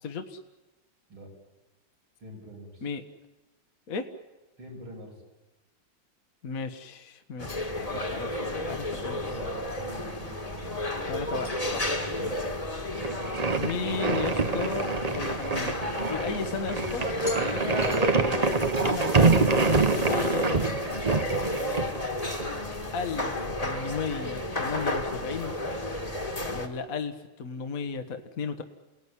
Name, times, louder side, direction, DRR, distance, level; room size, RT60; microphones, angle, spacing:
voice 1, 0.0-0.4 2.8-3.0 3.9-4.1 6.4-9.4 11.1-11.9 12.2-12.5 13.5-14.9 15.1-17.0 17.3-17.8 18.1-20.7 22.9-23.3 23.6-25.5 26.5-28.6, left 5 dB, 45° left, 7 dB, 1.6 m, -35 dB
voice 2, 2.2-2.9 4.6-5.2 8.9-10.8 21.3-21.6, right 1 dB, 85° right, -1 dB, 7.8 m, -44 dB
sound 1, 7.4-26.7, left 1 dB, 20° left, 1.9 m, -32 dB
sound 2, 13.0-22.5, right 4 dB, 30° right, 0.7 m, -26 dB
29.0 x 18.5 x 9.9 m, 1.1 s
omnidirectional pair, 2.2 m